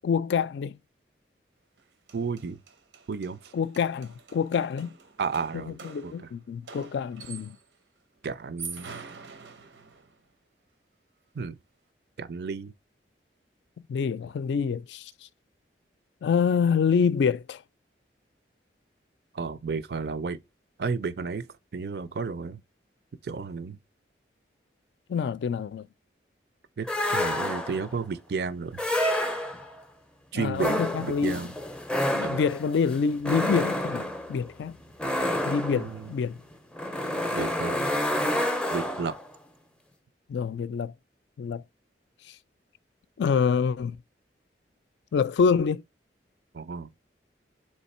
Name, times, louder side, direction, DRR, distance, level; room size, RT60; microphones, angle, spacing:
voice 1, 0.0-0.8 3.5-4.9 5.5-7.6 13.9-15.1 16.2-17.6 25.1-25.9 30.3-31.4 32.1-34.8 35.5-36.4 40.3-40.9 41.4-41.6 42.3-42.4 43.2-44.0 45.1-45.8, left 6 dB, 70° left, 0.3 m, -26 dB
sound 1, 1.8-1.9 2.1-7.7 8.4-10.2, right 5 dB, 90° right, 0.8 m, -45 dB
voice 2, 2.1-2.6 3.1-3.5 5.2-5.8 6.0-6.1 8.2-8.9 11.3-11.6 12.2-12.7 19.3-20.4 20.8-22.6 23.2-23.8 26.8-28.8 30.3-30.7 31.0-31.5 32.2-32.4 35.7-36.1 37.3-38.0 38.7-39.2 46.5-46.9, right 5 dB, 60° right, 0.4 m, -32 dB
sound 2, 26.9-27.9 28.7-29.8 30.5-39.3, left 1 dB, 5° left, 0.4 m, -29 dB
3.6 x 3.2 x 4.2 m
head